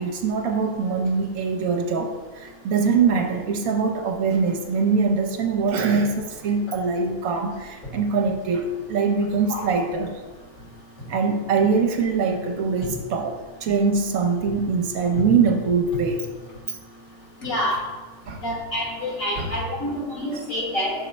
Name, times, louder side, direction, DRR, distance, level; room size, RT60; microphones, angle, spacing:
voice 1, 0.0-10.2 11.1-16.3 16.7-16.8 18.3-18.4 19.4-19.5 20.3-20.4, right 5 dB, 70° right, 3 dB, 1.1 m, -23 dB
voice 2, 17.4-17.8 18.4-20.9, equal, 60° left, -3 dB, 2.0 m, -27 dB
6.8 x 4.2 x 4.2 m, 1.3 s
omnidirectional pair, 1.6 m